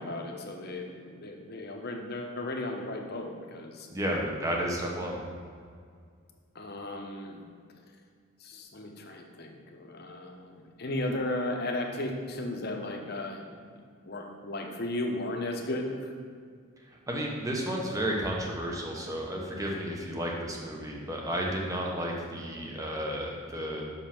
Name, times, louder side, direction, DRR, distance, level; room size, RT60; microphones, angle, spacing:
voice 1, 0.0-3.9 6.5-7.4 8.4-13.4 14.0-16.1, left 1 dB, 50° left, 2 dB, 0.9 m, -35 dB
voice 2, 3.9-5.2 17.1-23.8, equal, 15° right, -1 dB, 1.0 m, -32 dB
5.7 x 5.4 x 5.9 m, 2.1 s
head